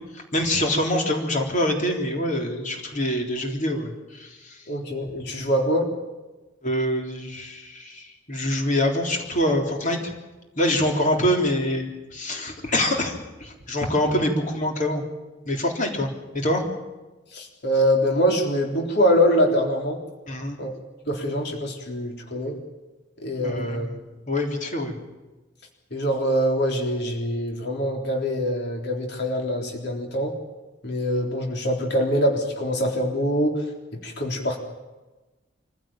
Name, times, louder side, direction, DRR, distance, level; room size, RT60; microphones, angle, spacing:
voice 1, 0.1-4.7 6.6-10.0 10.6-15.0 15.5-16.6 20.3-20.6 23.4-24.0 24.3-24.9, left 1 dB, 45° left, 2 dB, 3.7 m, -25 dB
voice 2, 4.7-5.8 17.3-20.0 20.6-20.7 21.1-22.6 23.2-23.9 25.9-30.3 30.8-33.6 34.0-34.6, equal, 60° left, 1 dB, 3.8 m, -24 dB
25.0 x 16.0 x 8.9 m, 1.1 s
head